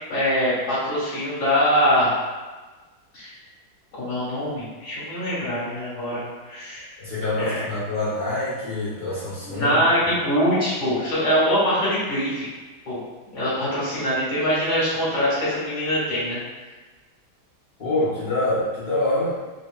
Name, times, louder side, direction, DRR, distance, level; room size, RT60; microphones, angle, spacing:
voice 1, 0.1-2.1 3.1-3.3 3.9-6.9 7.4-7.5 9.5-12.5 12.9-13.0 13.3-16.4, equal, 85° left, -9 dB, 2.4 m, -23 dB
voice 2, 7.0-9.8 17.8-19.3, left 2 dB, 40° left, -13 dB, 0.8 m, -25 dB
4.4 x 2.8 x 2.5 m, 1.3 s
omnidirectional pair, 2.1 m